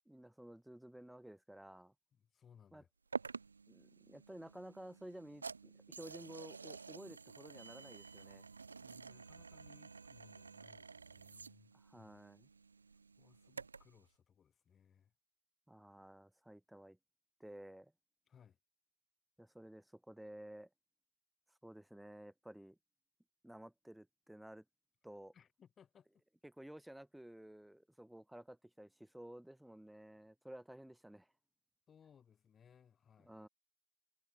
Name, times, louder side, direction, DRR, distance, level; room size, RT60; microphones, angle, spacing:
voice 1, 0.1-1.9 2.7-2.8 3.7-8.4 11.7-12.5 15.7-17.0 17.4-17.9 19.4-20.7 21.6-22.8 23.4-24.6 25.0-25.3 26.4-31.3 33.2-33.5, right 1 dB, ahead, 4.6 m, -54 dB
voice 2, 2.1-2.9 8.8-12.1 13.2-15.1 18.3-18.6 25.3-26.2 31.9-33.3, left 7 dB, 20° left, 4.5 m, -66 dB
sound 1, 3.1-14.0, right 4 dB, 75° right, 0.5 m, -50 dB
figure-of-eight pair, 90°, 0 cm